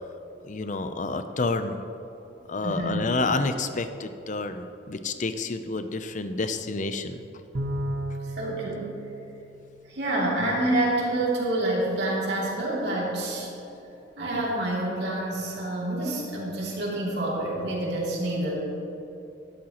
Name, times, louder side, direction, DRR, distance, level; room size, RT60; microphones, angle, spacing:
voice 1, 0.5-1.8 2.5-7.2, left 3 dB, 45° left, 9 dB, 0.6 m, -29 dB
voice 2, 2.6-3.2 8.4-8.9 9.9-13.6 14.2-18.6, right 1 dB, 65° right, -4 dB, 2.8 m, -27 dB
Bowed string instrument, 7.5-10.2, right 1 dB, 90° right, 1.3 m, -34 dB
12.5 x 12.5 x 3.0 m, 2.9 s
head